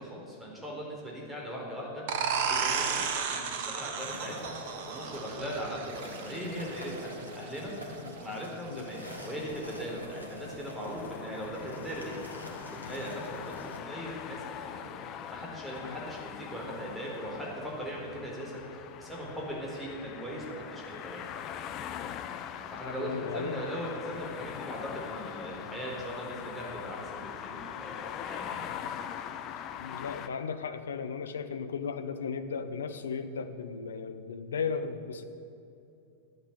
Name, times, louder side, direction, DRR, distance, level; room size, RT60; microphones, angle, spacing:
voice 1, 0.0-7.7 8.1-21.5 22.7-28.7, equal, 5° right, -3 dB, 4.1 m, -39 dB
sound 1, 2.1-7.5, right 6 dB, 50° right, 1.2 m, -33 dB
sound 2, 4.0-13.8, left 1 dB, 90° left, 1.9 m, -46 dB
sound 3, 10.8-30.3, left 9 dB, 35° left, 0.7 m, -42 dB
voice 2, 22.8-23.6 29.8-35.2, left 6 dB, 65° left, 9 dB, 0.8 m, -36 dB
12.0 x 8.2 x 9.2 m, 2.6 s
figure-of-eight pair, 90°, 0 cm